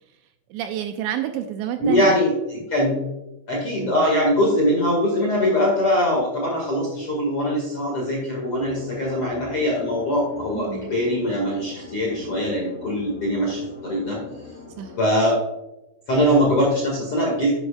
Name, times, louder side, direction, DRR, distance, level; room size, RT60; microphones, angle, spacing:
voice 1, 0.5-2.2 3.8-4.0 10.6-10.9 14.8-14.9, right 10 dB, 85° right, 7 dB, 2.7 m, -29 dB
voice 2, 1.8-3.0 3.5-14.2 15.0-15.4 16.1-17.6, equal, 50° left, -3 dB, 1.6 m, -22 dB
sound 1, 8.6-15.0, left 3 dB, 25° left, 2.3 m, -41 dB
10.5 x 9.9 x 2.4 m, 0.98 s
omnidirectional pair, 5.5 m